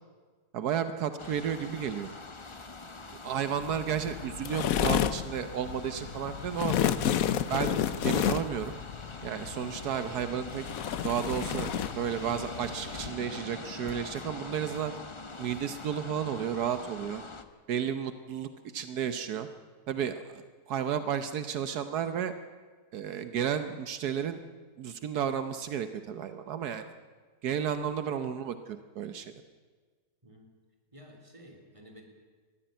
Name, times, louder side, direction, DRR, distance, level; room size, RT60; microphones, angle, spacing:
voice 1, 0.5-2.1 3.1-6.8 7.2-8.8 9.2-10.7 11.0-14.9 15.4-17.2 17.7-19.5 19.9-22.3 22.9-24.4 24.8-26.8 27.4-29.3, right 8 dB, 80° right, 10 dB, 1.4 m, -32 dB
sound 1, 1.2-17.4, left 3 dB, 25° left, 0.9 m, -44 dB
sound 2, 3.6-13.1, left 10 dB, 65° left, 1.1 m, -31 dB
voice 2, 30.9-32.0, equal, 20° right, 2 dB, 3.3 m, -53 dB
21.0 x 14.5 x 9.1 m, 1.5 s
omnidirectional pair, 1.7 m